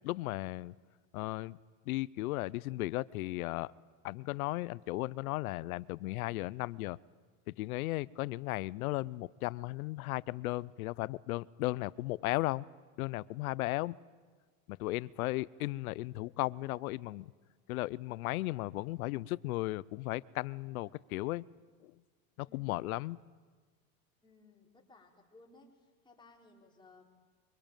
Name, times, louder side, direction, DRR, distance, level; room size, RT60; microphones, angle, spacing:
voice 1, 0.0-0.8 1.1-1.6 1.9-3.7 4.0-7.0 7.5-12.6 13.0-13.9 14.7-17.3 17.7-21.4 21.8-21.9 22.4-23.2, left 19 dB, 85° left, 22 dB, 0.7 m, -35 dB
voice 2, 22.5-22.9 24.2-27.1, left 3 dB, 10° left, -1 dB, 4.4 m, -61 dB
24.0 x 23.5 x 9.1 m, 1.5 s
supercardioid pair, 120°, 41 cm